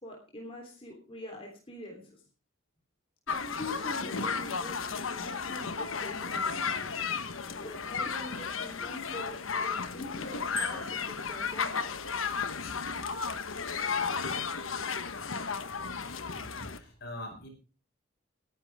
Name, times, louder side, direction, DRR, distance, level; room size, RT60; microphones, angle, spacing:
voice 1, 0.0-2.2 3.3-7.0 7.6-11.9, left 1 dB, 30° left, -1 dB, 3.4 m, -44 dB
sound 1, 3.3-16.8, left 5 dB, 85° left, 1.1 m, -34 dB
Bicycle bell, 10.5-11.2, right 2 dB, 10° right, 5.2 m, -41 dB
voice 2, 16.3-17.5, left 1 dB, 55° left, 3 dB, 5.2 m, -43 dB
20.5 x 10.5 x 3.5 m, 0.36 s
head